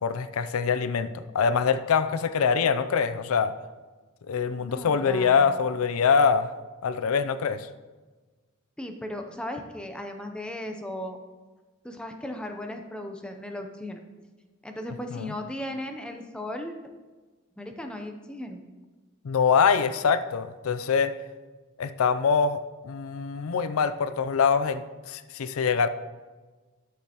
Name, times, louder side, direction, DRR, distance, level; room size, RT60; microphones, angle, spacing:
voice 1, 0.0-3.5 4.3-6.5 6.8-7.7 15.1-15.3 19.2-21.1 21.8-25.9, left 6 dB, 85° left, 12 dB, 0.4 m, -24 dB
voice 2, 4.6-5.6 8.8-11.2 11.8-14.0 14.6-16.7 17.6-18.6, left 1 dB, 5° left, 4 dB, 0.6 m, -36 dB
11.5 x 6.4 x 2.9 m, 1.3 s
head